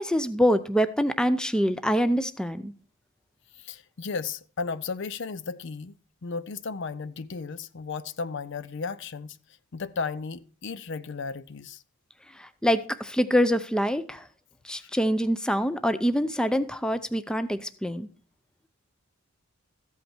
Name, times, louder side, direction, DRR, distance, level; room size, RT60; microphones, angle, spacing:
voice 1, 0.0-2.7 12.4-14.2 14.6-18.1, equal, 5° left, 0.5 m, -25 dB
voice 2, 3.6-5.9 6.2-9.4 9.7-11.8 14.8-14.9, left 4 dB, 50° left, 0.5 m, -34 dB
14.0 x 8.4 x 4.4 m
head